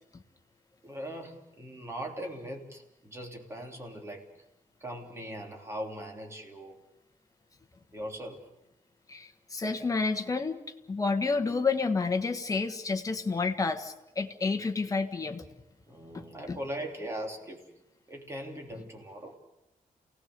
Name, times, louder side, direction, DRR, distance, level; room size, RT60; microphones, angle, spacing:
voice 1, 0.8-4.2 4.8-6.8 7.9-8.4 15.9-17.7 18.1-19.4, equal, 20° right, 1 dB, 3.1 m, -40 dB
voice 2, 9.1-10.6 10.9-15.4 16.1-16.6, left 4 dB, 25° left, 5 dB, 1.4 m, -30 dB
28.5 x 18.0 x 6.8 m, 0.92 s
wide cardioid pair, 165°, 14 cm